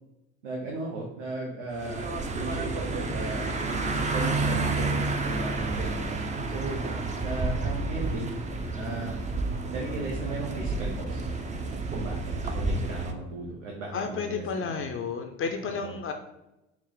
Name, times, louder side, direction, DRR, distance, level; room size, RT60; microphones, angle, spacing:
voice 1, 0.4-2.1 2.3-3.5 4.1-5.0 5.2-6.1 6.5-6.9 7.2-8.3 8.7-9.1 9.7-11.3 11.9-14.9 15.6-15.9, right 2 dB, 90° right, -1 dB, 0.7 m, -36 dB
sound 1, 1.7-13.1, right 3 dB, 20° right, 0.5 m, -30 dB
voice 2, 13.9-16.1, left 5 dB, 40° left, 5 dB, 0.5 m, -32 dB
4.5 x 2.1 x 3.8 m, 0.92 s
hypercardioid pair, 70°, 36 cm